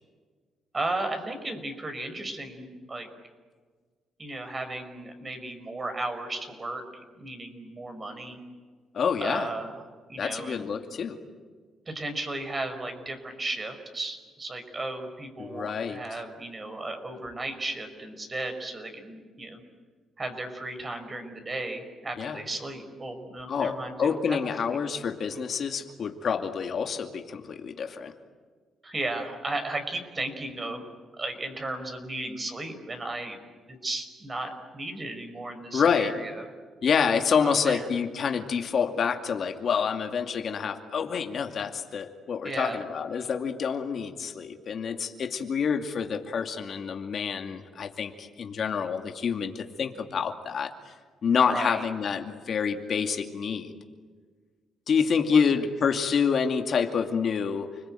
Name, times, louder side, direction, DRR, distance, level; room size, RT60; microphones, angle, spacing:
voice 1, 0.7-3.1 4.2-8.4 9.2-9.8 10.1-10.7 11.9-19.6 20.2-24.4 24.6-24.8 28.8-30.8 31.2-33.4 33.8-36.4 37.4-37.9 42.4-42.8 51.4-51.8 55.3-55.7, right 2 dB, 30° right, 6 dB, 5.6 m, -35 dB
voice 2, 8.9-9.5 10.2-11.2 15.4-16.0 22.2-22.4 23.5-28.1 35.7-36.2 36.8-50.9 51.2-53.8 54.9-57.7, left 6 dB, 55° left, 5 dB, 2.4 m, -27 dB
30.0 x 21.0 x 9.3 m, 1.5 s
cardioid pair, 90°, 0 cm